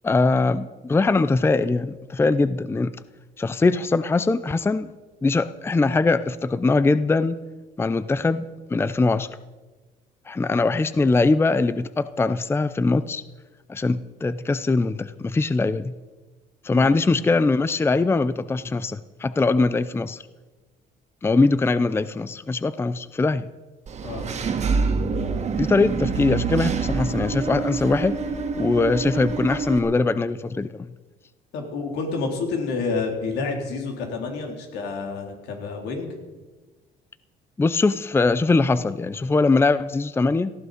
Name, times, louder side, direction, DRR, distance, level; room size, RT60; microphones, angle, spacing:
voice 1, 0.0-2.9 3.4-4.9 5.2-7.4 7.8-8.4 8.7-9.3 10.3-13.2 13.7-16.0 16.6-20.2 21.2-23.4 25.6-28.2 28.6-30.9 37.6-40.5, left 3 dB, 15° left, 15 dB, 0.5 m, -21 dB
Engine / Mechanisms, 23.9-29.8, right 5 dB, 40° right, 2.1 m, -26 dB
voice 2, 31.5-36.1, left 4 dB, 85° left, 2 dB, 4.0 m, -29 dB
18.5 x 14.5 x 5.2 m, 1.2 s
cardioid pair, 110°, 17 cm